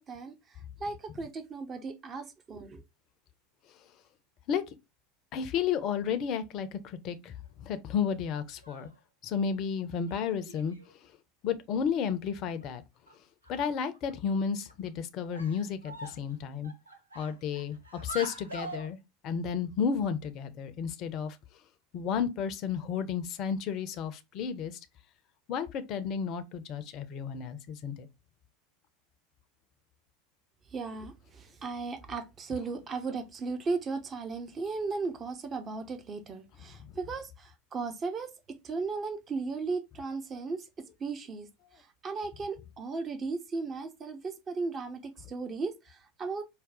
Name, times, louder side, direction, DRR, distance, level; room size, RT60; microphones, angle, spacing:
voice 1, 0.0-2.8 30.7-41.5 41.7-46.4, right 4 dB, 30° right, 0.9 m, -36 dB
voice 2, 5.3-8.9 9.2-10.8 11.4-12.8 13.5-16.7 17.2-17.8 18.0-19.0 19.2-21.4 21.9-24.8 25.5-28.1, left 7 dB, 45° left, 0.6 m, -32 dB
sound 1, 8.5-9.0 10.1-10.9 12.1-12.2 12.6-12.7 13.1-13.2 13.4-14.1 14.7-14.9 15.3-16.3 16.6-18.9, right 2 dB, 90° right, 0.7 m, -44 dB
4.9 x 2.3 x 3.6 m
figure-of-eight pair, 75°, 0 cm